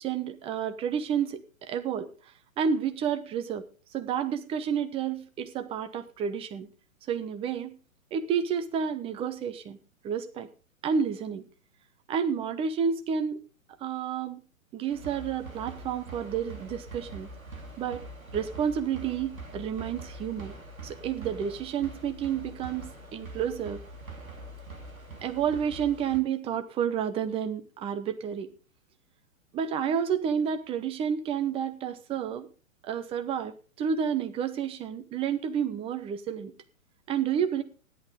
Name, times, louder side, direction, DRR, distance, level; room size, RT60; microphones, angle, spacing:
voice 1, 0.0-2.1 2.6-3.6 3.9-6.7 7.1-7.8 8.1-9.8 10.0-10.5 10.8-11.4 12.1-13.4 13.8-14.4 14.7-17.3 17.8-18.1 18.3-20.5 20.8-23.8 25.2-28.5 29.5-32.5 32.8-36.5 37.1-37.6, right 7 dB, 15° right, 10 dB, 0.8 m, -30 dB
sound 1, 14.9-26.2, right 2 dB, 80° right, 2.6 m, -44 dB
14.5 x 11.0 x 3.7 m, 0.36 s
figure-of-eight pair, 115°, 41 cm